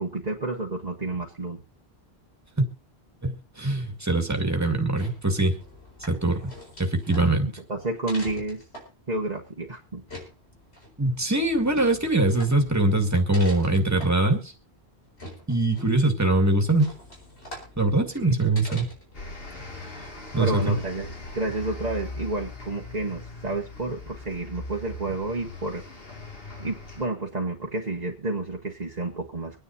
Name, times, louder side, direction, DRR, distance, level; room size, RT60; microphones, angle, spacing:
voice 1, 0.0-1.6 7.7-8.6 9.1-10.0 18.2-18.3 18.7-18.8 20.4-25.8 26.6-29.6, right 2 dB, 40° right, -1 dB, 1.5 m, -30 dB
voice 2, 3.2-5.6 6.1-6.5 6.8-7.5 11.0-14.5 15.5-16.9 17.8-18.9 20.3-20.7, right 2 dB, 15° right, 4 dB, 2.0 m, -23 dB
sound 1, 4.9-19.2, left 1 dB, 90° left, 4.9 m, -45 dB
sound 2, 19.1-27.1, left 2 dB, 65° left, 2.8 m, -40 dB
25.0 x 10.0 x 2.8 m, 0.28 s
omnidirectional pair, 1.1 m